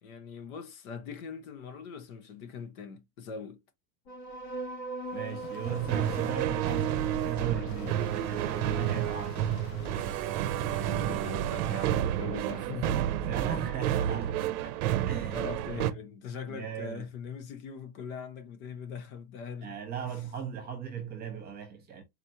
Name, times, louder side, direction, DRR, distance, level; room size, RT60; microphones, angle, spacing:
voice 1, 0.0-3.6 10.7-13.0 15.3-19.8 20.0-20.1, left 6 dB, 55° left, 1.1 m, -41 dB
sound 1, 4.1-11.0, right 2 dB, 85° left, 3.1 m, -43 dB
sound 2, 5.1-10.8, left 6 dB, 30° left, 0.6 m, -46 dB
voice 2, 5.1-9.5 13.2-14.8 15.1-15.5 15.9-16.0 16.5-17.0 19.6-22.0, right 8 dB, 20° right, 1.2 m, -37 dB
sound 3, 5.7-15.9, right 11 dB, 60° right, 0.7 m, -30 dB
4.3 x 3.0 x 2.8 m
supercardioid pair, 175°, 50 cm